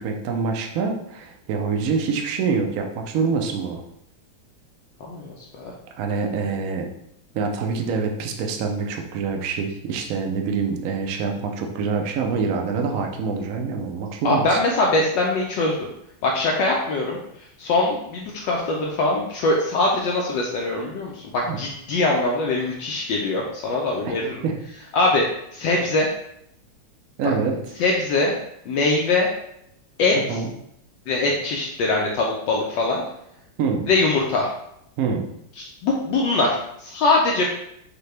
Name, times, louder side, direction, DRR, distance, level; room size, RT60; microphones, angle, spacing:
voice 1, 0.0-3.8 6.0-6.9 7.3-14.6 21.4-21.6 24.0-24.2 24.4-24.6 27.2-27.6 30.1-30.5 33.6-33.9 35.0-35.3, right 5 dB, 80° right, 3 dB, 0.7 m, -25 dB
voice 2, 5.1-5.7 14.2-15.9 16.2-17.2 17.6-24.4 24.9-25.3 25.5-26.1 27.2-27.3 27.8-28.3 28.7-29.3 30.0-30.4 31.1-33.0 33.9-34.5 35.6-37.4, left 2 dB, 75° left, -1 dB, 1.1 m, -22 dB
6.5 x 2.2 x 3.3 m, 0.77 s
omnidirectional pair, 2.3 m